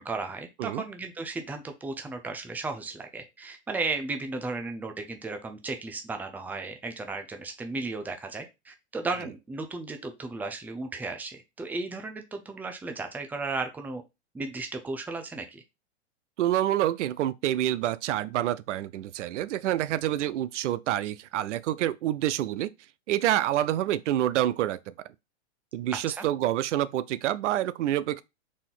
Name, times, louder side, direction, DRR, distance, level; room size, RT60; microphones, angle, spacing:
voice 1, 0.0-14.0 14.3-15.6 26.1-26.3, right 3 dB, 5° right, 0.5 m, -35 dB
voice 2, 16.4-22.7 23.1-24.9 25.7-28.2, right 13 dB, 80° right, 0.5 m, -27 dB
4.2 x 2.7 x 3.7 m
hypercardioid pair, 125°, 35 cm